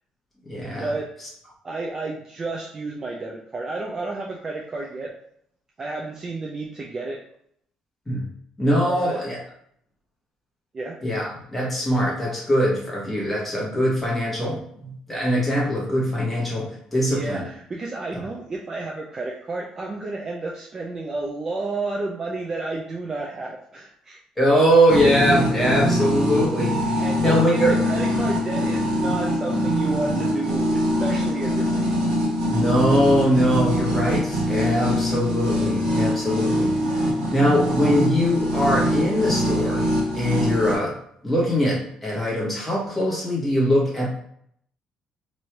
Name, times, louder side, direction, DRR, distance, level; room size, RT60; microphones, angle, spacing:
voice 1, 0.5-0.9 8.1-8.3 8.6-9.4 11.0-17.4 18.1-18.2 24.4-27.7 32.5-37.0 37.3-39.9 40.1-41.0 41.2-44.1, equal, 5° left, -5 dB, 1.2 m, -22 dB
voice 2, 1.6-5.1 5.8-7.2 8.9-9.2 10.7-11.0 17.0-24.2 27.0-31.9, right 3 dB, 25° right, -1 dB, 0.4 m, -31 dB
sound 1, 24.9-40.8, equal, 55° right, 1.4 m, -23 dB
3.1 x 2.6 x 4.4 m, 0.68 s
cardioid pair, 175°, 2 cm